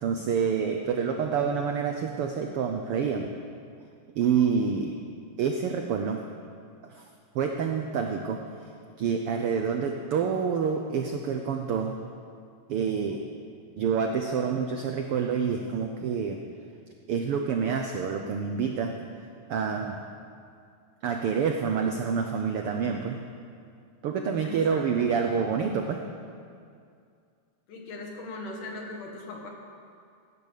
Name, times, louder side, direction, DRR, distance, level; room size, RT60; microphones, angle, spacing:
voice 1, 0.0-3.3 4.1-5.0 5.4-6.2 6.9-7.1 7.3-8.4 9.0-11.9 12.7-13.2 13.8-16.4 17.1-19.1 19.5-20.0 21.0-23.2 24.0-26.0, right 6 dB, 80° right, 4 dB, 1.2 m, -27 dB
voice 2, 24.4-25.1 27.7-29.5, left 2 dB, 85° left, 0 dB, 3.4 m, -39 dB
16.5 x 9.8 x 6.7 m, 2.3 s
omnidirectional pair, 3.5 m